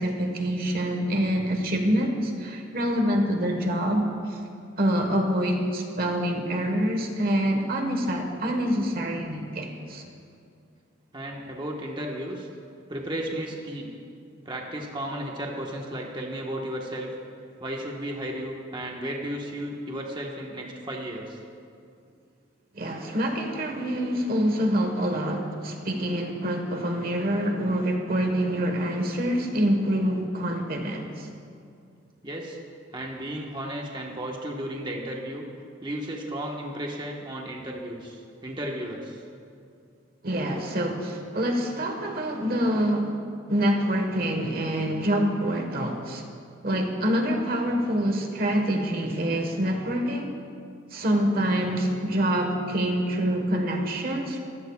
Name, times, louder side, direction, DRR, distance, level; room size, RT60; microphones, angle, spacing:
voice 1, 0.0-4.4 4.8-10.0 22.7-31.3 40.2-43.2 43.5-46.2 46.6-50.4 50.9-54.4, equal, 50° right, 3 dB, 1.4 m, -26 dB
voice 2, 11.1-12.5 12.9-13.9 14.4-17.1 17.6-21.4 32.2-32.6 32.9-35.5 35.8-39.2, right 1 dB, 25° right, -1 dB, 1.3 m, -34 dB
24.0 x 15.5 x 2.4 m, 2.4 s
head